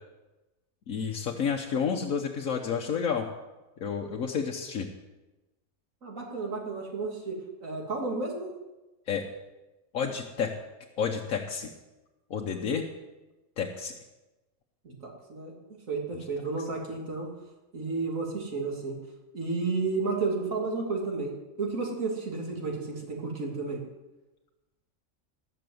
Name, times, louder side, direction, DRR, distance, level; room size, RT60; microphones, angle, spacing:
voice 1, 0.9-3.3 3.8-4.9 9.1-9.2 9.9-10.5 11.0-11.7 12.3-12.9 13.6-13.9, left 6 dB, 85° left, 1 dB, 1.4 m, -30 dB
voice 2, 6.0-8.5 14.8-15.5 15.9-17.3 17.7-19.0 19.3-23.8, right 3 dB, 75° right, 0 dB, 3.1 m, -32 dB
19.5 x 6.7 x 7.9 m, 1.1 s
omnidirectional pair, 1.4 m